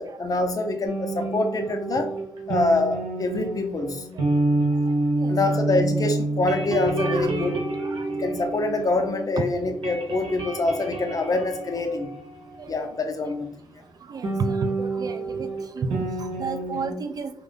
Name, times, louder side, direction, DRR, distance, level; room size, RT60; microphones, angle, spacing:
voice 1, 0.0-2.1 2.5-4.1 5.3-7.7 8.2-12.1 12.7-13.5, left 2 dB, 45° left, 4 dB, 0.6 m, -25 dB
sound 1, 0.8-9.3 9.6-13.1 14.2-16.9, right 2 dB, 75° right, 0.8 m, -28 dB
voice 2, 5.1-5.8 7.0-7.3 7.8-8.1 9.4-9.5 12.6-12.7 14.1-15.5 15.8-17.3, right 4 dB, 50° right, 8 dB, 0.3 m, -32 dB
2.6 x 2.1 x 3.6 m, 0.65 s
supercardioid pair, 55°, 8 cm